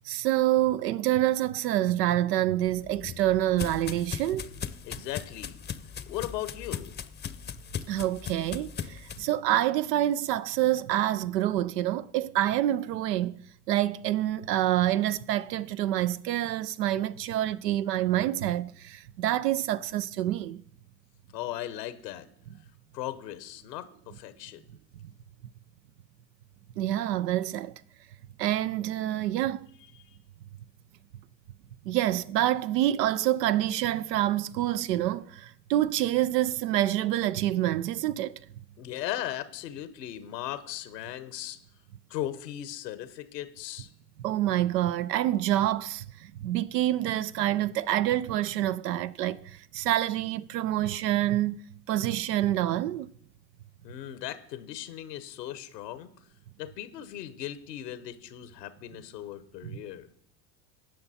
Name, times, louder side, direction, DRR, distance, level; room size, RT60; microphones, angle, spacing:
voice 1, 0.1-4.5 7.9-13.4 13.7-20.6 26.8-27.7 28.4-29.6 31.9-38.4 44.2-51.6 51.9-53.1 59.6-59.7, right 13 dB, 85° right, 0.6 m, -27 dB
sound 1, 2.7-9.2, left 8 dB, 20° left, 0.6 m, -39 dB
voice 2, 4.5-5.6 6.0-6.9 21.3-22.3 22.9-24.6 29.9-30.2 38.8-41.6 42.1-43.9 53.8-56.1 56.6-60.1, left 13 dB, 85° left, 1.0 m, -38 dB
16.5 x 5.9 x 4.1 m
hypercardioid pair, 75°, 48 cm